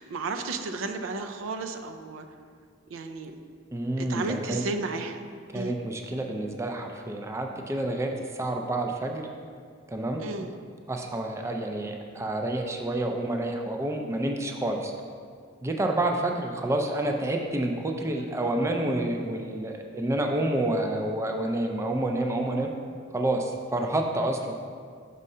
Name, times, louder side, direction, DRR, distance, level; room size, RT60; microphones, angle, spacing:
voice 1, 0.0-2.3 2.9-3.3 4.0-5.2 5.5-5.8 10.2-10.5, right 3 dB, 80° right, 6 dB, 0.4 m, -33 dB
voice 2, 3.7-4.6 5.5-9.2 9.9-10.2 10.9-14.9 15.6-22.7 23.1-24.6, right 1 dB, 15° right, 3 dB, 0.4 m, -28 dB
5.4 x 3.6 x 5.4 m, 2.1 s
head